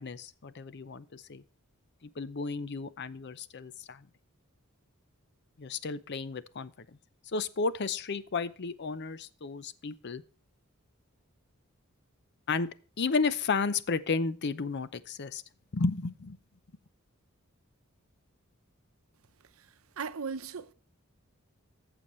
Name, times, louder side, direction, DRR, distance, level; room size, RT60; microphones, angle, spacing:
voice 1, 0.0-1.4 2.0-4.1 5.6-6.9 7.3-10.2 12.5-12.7 13.0-15.4 15.7-16.4, left 4 dB, 55° left, 0.6 m, -33 dB
voice 2, 20.0-20.7, right 5 dB, 75° right, 0.7 m, -37 dB
14.0 x 7.0 x 3.1 m
head